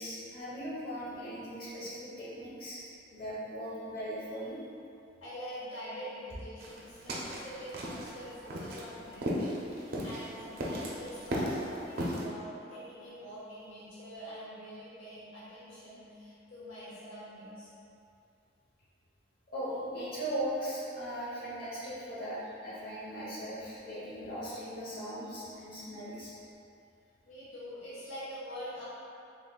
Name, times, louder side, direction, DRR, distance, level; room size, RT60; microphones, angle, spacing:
voice 1, 0.0-2.8 3.1-4.6 9.8-10.0 19.5-26.3, equal, 50° left, -10 dB, 1.1 m, -39 dB
voice 2, 5.2-17.7 27.2-28.8, equal, 85° left, -10 dB, 0.8 m, -45 dB
sound 1, 6.6-12.2, equal, 50° right, 0.5 m, -36 dB
3.6 x 3.2 x 2.4 m, 2.7 s
head